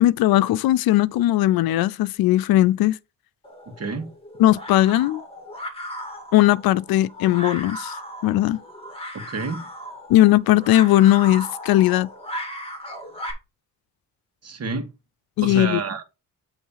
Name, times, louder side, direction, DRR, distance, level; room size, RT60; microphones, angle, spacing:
voice 1, 0.0-3.0 4.4-5.2 6.3-7.9 8.2-8.6 10.1-12.1 15.4-15.8, left 14 dB, 90° left, 0.5 m, -18 dB
sound 1, 3.4-13.3, equal, 15° left, 2.2 m, -36 dB
voice 2, 3.7-4.1 9.1-9.6 14.4-14.9 15.4-16.0, right 4 dB, 45° right, 1.5 m, -29 dB
8.4 x 3.2 x 5.6 m
cardioid pair, 100°, 35 cm